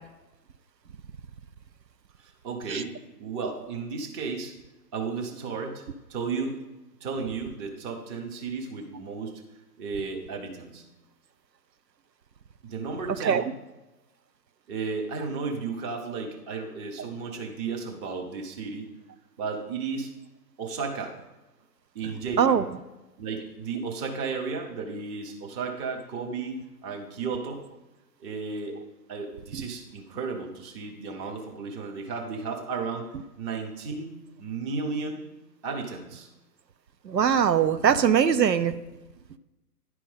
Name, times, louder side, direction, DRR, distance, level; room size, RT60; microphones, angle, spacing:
voice 1, 2.2-4.5 4.9-5.8 6.1-6.6 7.0-9.4 9.8-10.8 12.6-13.6 14.7-18.9 19.4-20.1 20.6-21.2 21.9-22.7 23.2-27.6 28.2-28.8 29.1-33.1 33.4-35.2 35.6-36.3, right 4 dB, 15° right, 2 dB, 0.7 m, -34 dB
voice 2, 37.1-38.7, right 8 dB, 85° right, 12 dB, 0.7 m, -21 dB
10.5 x 4.6 x 5.4 m, 1.0 s
figure-of-eight pair, 125°, 49 cm